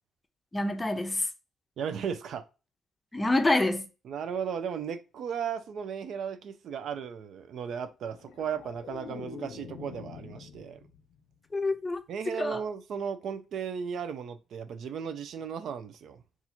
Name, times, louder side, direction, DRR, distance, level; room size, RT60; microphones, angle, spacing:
voice 1, 0.5-1.3 3.1-3.9 11.5-12.0 12.4-12.6, left 2 dB, 20° left, 0.6 m, -27 dB
voice 2, 1.8-2.4 4.0-10.8 12.1-16.2, right 7 dB, 70° right, 0.4 m, -35 dB
sound 1, 8.0-11.2 11.6-11.9, left 7 dB, 75° left, 0.4 m, -45 dB
2.7 x 2.4 x 4.2 m
cardioid pair, 90°, 0 cm